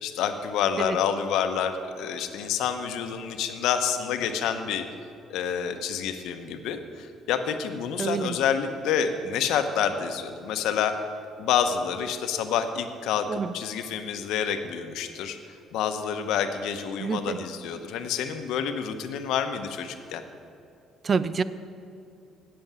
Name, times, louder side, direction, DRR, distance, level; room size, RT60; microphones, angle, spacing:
voice 1, 0.0-4.9 5.3-11.0 11.4-15.4 15.7-20.2, left 8 dB, 80° left, 8 dB, 0.8 m, -28 dB
voice 2, 8.0-8.4 13.3-13.5 17.0-17.4 21.0-21.4, right 5 dB, 35° right, 15 dB, 0.4 m, -27 dB
8.6 x 7.4 x 8.0 m, 2.5 s
cardioid pair, 115°, 0 cm